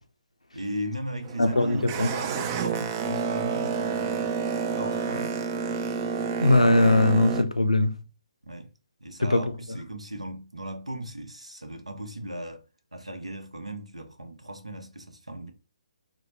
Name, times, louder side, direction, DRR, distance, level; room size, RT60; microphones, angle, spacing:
voice 1, 0.5-4.3 4.8-5.4 8.5-8.7 9.0-12.6 12.9-15.5, equal, 90° right, 0.7 m, -37 dB
Boat Water vehicle, 1.2-7.4, right 5 dB, 25° right, 0.3 m, -29 dB
voice 2, 1.4-2.1 6.4-7.9 9.2-9.8, left 2 dB, 90° left, 0.5 m, -21 dB
4.0 x 2.1 x 3.2 m
figure-of-eight pair, 135°, 3 cm